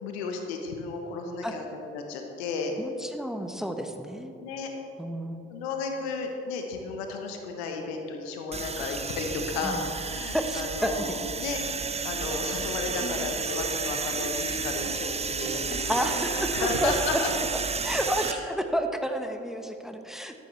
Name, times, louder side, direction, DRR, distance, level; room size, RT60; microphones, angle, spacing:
voice 1, 0.0-2.7 4.4-4.7 5.5-11.6 12.0-17.3, left 4 dB, 80° left, 3 dB, 1.1 m, -33 dB
voice 2, 2.8-4.3 5.0-5.6 9.6-9.8 10.3-11.0 15.9-17.2 17.5-20.5, equal, ahead, 6 dB, 1.1 m, -31 dB
sound 1, 8.5-18.3, right 5 dB, 20° right, 0.5 m, -32 dB
sound 2, 12.2-12.6 12.9-13.2 13.5-13.8 14.1-14.4 14.7-15.7 16.0-17.0, right 3 dB, 35° right, 2.6 m, -39 dB
sound 3, 13.6-14.6 14.9-15.0 15.2-15.8 16.1-16.2 16.5-16.7 17.7-18.4, right 3 dB, 85° right, 2.4 m, -47 dB
13.0 x 12.0 x 3.3 m, 2.9 s
hypercardioid pair, 40°, 32 cm